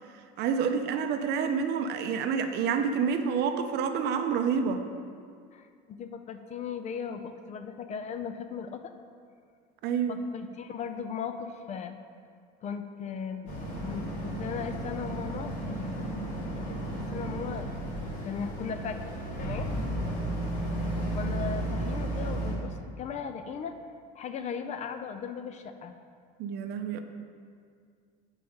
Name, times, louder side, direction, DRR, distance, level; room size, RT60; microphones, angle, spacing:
voice 1, 0.4-4.8 9.8-10.2 26.4-27.0, right 6 dB, 55° right, 7 dB, 0.5 m, -28 dB
voice 2, 5.5-8.9 10.1-12.0 12.6-13.5 13.8-16.1 16.5-17.7 18.2-19.1 19.4-19.7 21.0-23.7 24.1-25.9, left 6 dB, 35° left, 8 dB, 0.4 m, -37 dB
Boat Water vehicle, 13.5-22.5, right 1 dB, 80° left, 1.5 m, -33 dB
5.1 x 4.5 x 5.4 m, 2.2 s
supercardioid pair, 115°, 21 cm